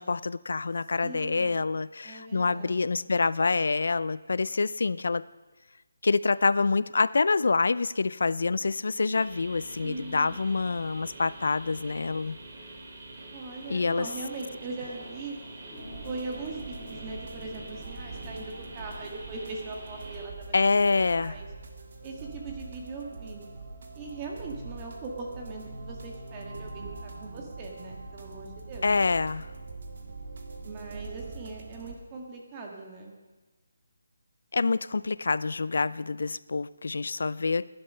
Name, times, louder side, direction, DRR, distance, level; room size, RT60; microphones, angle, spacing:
voice 1, 0.0-5.2 6.0-12.4 13.7-14.1 20.5-21.4 28.8-29.5 34.5-37.6, left 4 dB, 65° left, 19 dB, 0.4 m, -26 dB
voice 2, 1.0-1.6 2.0-2.8 9.8-10.6 13.3-15.4 16.0-21.5 22.0-23.4 23.9-28.8 30.6-33.1, right 3 dB, 20° right, 1 dB, 1.7 m, -40 dB
sound 1, 9.1-20.3, right 2 dB, 35° right, 2.7 m, -46 dB
sound 2, 14.3-19.1, left 2 dB, 15° left, 2.1 m, -49 dB
sound 3, 15.8-32.0, right 3 dB, 50° right, 1.8 m, -43 dB
15.5 x 11.0 x 5.5 m, 1.2 s
hypercardioid pair, 170°, 0 cm